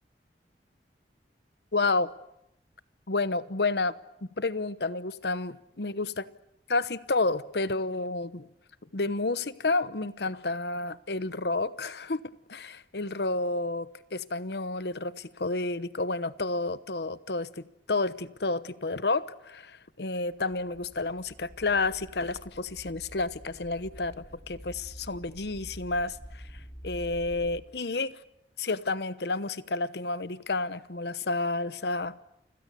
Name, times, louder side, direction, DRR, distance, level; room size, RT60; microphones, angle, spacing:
voice 1, 1.7-2.1 3.1-3.9 4.4-6.3 6.7-8.5 8.9-12.2 12.5-26.4 26.8-28.1 28.6-32.1, left 3 dB, 70° left, 1.0 m, -30 dB
sound 1, 20.3-27.6, equal, 15° left, 3.4 m, -47 dB
30.0 x 26.0 x 6.9 m
head